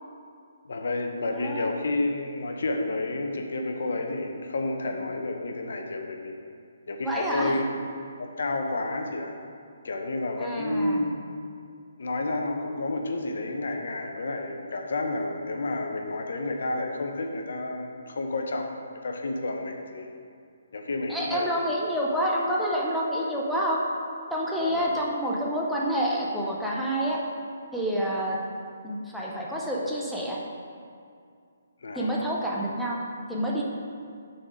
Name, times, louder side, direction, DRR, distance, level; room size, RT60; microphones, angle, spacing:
voice 1, 0.6-6.4 6.9-7.6 8.2-9.4 9.8-11.1 12.0-20.1 20.7-21.5 24.6-24.9 31.8-32.3, left 2 dB, 70° left, 3 dB, 0.8 m, -30 dB
voice 2, 1.3-1.7 7.0-7.5 10.4-11.1 21.1-23.8 24.3-27.2 27.7-28.4 28.8-30.4 31.9-33.0 33.3-33.6, equal, ahead, -5 dB, 0.7 m, -28 dB
6.2 x 4.2 x 4.9 m, 2.3 s
hypercardioid pair, 155°, 0 cm